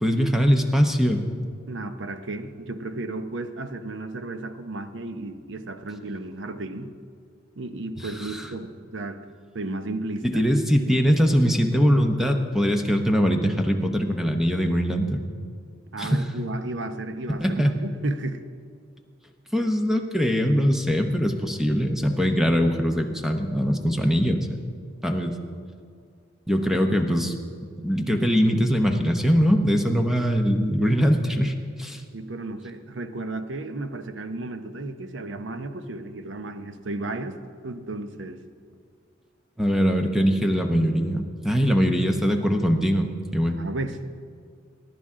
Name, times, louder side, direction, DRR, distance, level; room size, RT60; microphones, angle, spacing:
voice 1, 0.0-1.2 8.0-8.5 10.2-15.2 16.0-16.3 17.4-17.8 19.5-24.6 25.0-25.3 26.5-27.3 27.8-32.0 39.6-43.1 43.3-43.6, equal, ahead, 4 dB, 0.9 m, -22 dB
voice 2, 1.7-6.9 7.6-9.2 9.5-10.4 15.9-18.4 32.1-37.4 37.6-38.4 43.4-44.0, right 2 dB, 65° right, 9 dB, 0.8 m, -33 dB
19.0 x 11.0 x 3.7 m, 2.2 s
head